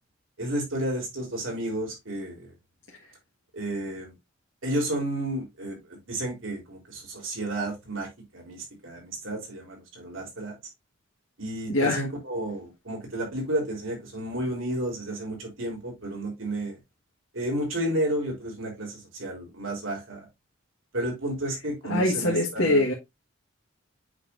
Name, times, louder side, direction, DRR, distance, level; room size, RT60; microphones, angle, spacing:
voice 1, 0.4-2.5 3.5-4.1 4.6-5.8 6.1-8.1 8.3-10.5 11.4-16.8 17.3-20.3 20.9-22.8, right 1 dB, 85° right, 3.8 m, -31 dB
voice 2, 11.7-12.0 21.8-22.9, left 2 dB, 70° left, 1.6 m, -23 dB
8.1 x 5.6 x 2.6 m
head